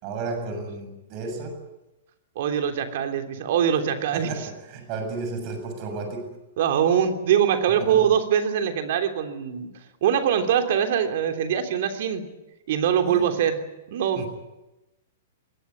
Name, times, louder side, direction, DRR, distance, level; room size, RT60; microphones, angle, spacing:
voice 1, 0.0-1.6 4.1-6.4 7.7-8.0 13.0-13.3 14.2-14.3, right 3 dB, 40° right, 5 dB, 7.0 m, -33 dB
voice 2, 2.3-4.3 6.6-9.7 10.0-12.2 12.7-13.6 13.9-14.2, right 8 dB, 55° right, 6 dB, 3.2 m, -23 dB
22.0 x 19.0 x 9.6 m, 0.99 s
hypercardioid pair, 110°, 0 cm